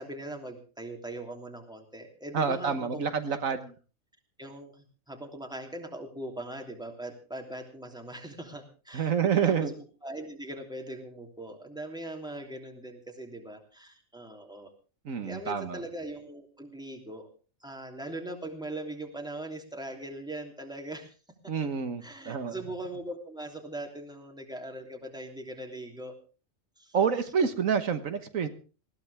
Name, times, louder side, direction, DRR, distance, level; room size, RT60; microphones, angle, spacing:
voice 1, 0.0-3.6 4.4-14.7 15.2-17.3 17.6-21.2 21.4-21.7 22.0-26.1 26.8-27.0, right 1 dB, 5° right, 2 dB, 3.1 m, -40 dB
voice 2, 2.3-3.7 8.9-9.7 15.0-15.8 21.5-22.5 26.9-28.5, right 7 dB, 80° right, 9 dB, 1.7 m, -28 dB
20.0 x 16.0 x 3.5 m, 0.36 s
omnidirectional pair, 1.4 m